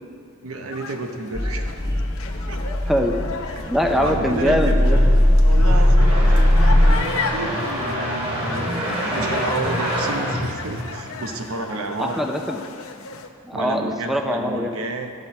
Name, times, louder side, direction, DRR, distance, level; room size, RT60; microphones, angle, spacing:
voice 1, 0.4-1.7 2.5-2.6 3.5-3.6 4.0-12.2 13.5-15.1, right 3 dB, 75° right, 5 dB, 0.9 m, -31 dB
sound 1, 0.7-13.3, left 4 dB, 75° left, 0.7 m, -34 dB
sound 2, 1.3-6.9, left 1 dB, 25° left, 1.0 m, -18 dB
voice 2, 2.9-3.2 3.7-5.0 12.0-12.6 13.4-14.8, equal, ahead, 3 dB, 0.5 m, -22 dB
sound 3, 4.0-11.3, equal, 25° right, 1.9 m, -28 dB
12.0 x 5.9 x 5.4 m, 2.4 s
head